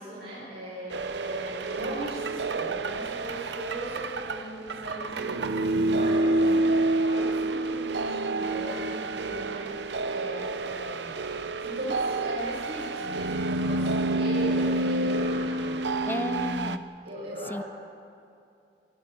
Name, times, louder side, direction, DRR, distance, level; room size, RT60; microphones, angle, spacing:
voice 1, 0.0-11.2 11.6-15.8 17.0-17.6, right 1 dB, 70° right, -8 dB, 6.9 m, -38 dB
sound 1, 0.9-16.8, right 2 dB, 85° right, 0.8 m, -28 dB
voice 2, 16.0-16.8 17.5-17.6, left 1 dB, 10° left, 11 dB, 0.5 m, -33 dB
26.0 x 25.5 x 4.6 m, 2.5 s
head